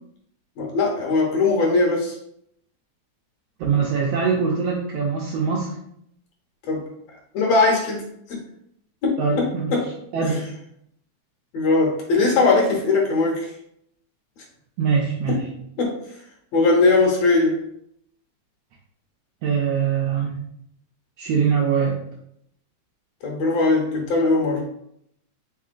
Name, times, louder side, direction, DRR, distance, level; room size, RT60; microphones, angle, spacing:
voice 1, 0.6-2.2 6.7-6.9 7.3-8.4 9.0-9.9 11.5-13.5 15.3-15.4 15.8-16.0 16.5-17.6 23.2-24.6, left 3 dB, 70° left, -1 dB, 1.7 m, -20 dB
voice 2, 3.6-5.7 9.2-9.8 10.1-10.5 14.8-15.5 19.4-20.3 21.2-22.0, right 6 dB, 80° right, -2 dB, 1.4 m, -22 dB
4.4 x 3.7 x 2.4 m, 0.73 s
omnidirectional pair, 3.3 m